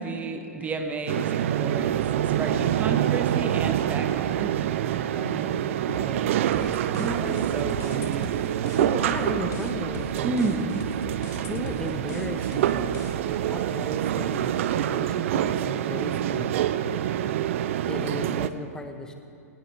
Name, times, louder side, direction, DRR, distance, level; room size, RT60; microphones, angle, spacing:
voice 1, 0.0-2.0 2.4-4.6 6.7-8.3 10.2-10.8, right 3 dB, 20° right, 6 dB, 1.1 m, -31 dB
sound 1, 1.1-18.5, right 11 dB, 55° right, 0.6 m, -26 dB
voice 2, 4.9-7.1 8.8-10.5 11.3-16.5 17.9-19.1, left 2 dB, 10° left, 5 dB, 1.1 m, -37 dB
sound 2, 6.5-13.4, left 5 dB, 30° left, 1.2 m, -42 dB
19.5 x 19.5 x 3.4 m, 2.4 s
figure-of-eight pair, 105°, 8 cm